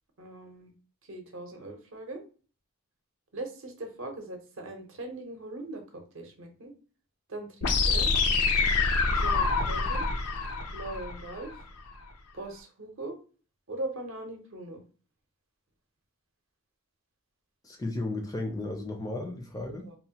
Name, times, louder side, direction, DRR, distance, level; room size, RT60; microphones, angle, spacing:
voice 1, 0.2-0.7 1.1-2.2 3.3-6.7 7.3-8.1 9.1-10.1 10.7-11.5 12.3-13.2 13.7-14.8 19.7-20.0, right 2 dB, 60° right, 4 dB, 0.7 m, -40 dB
sound 1, 7.6-11.6, left 4 dB, 85° left, 0.5 m, -26 dB
voice 2, 17.6-19.9, left 2 dB, 15° left, 3 dB, 0.4 m, -34 dB
3.0 x 2.1 x 2.8 m, 0.37 s
head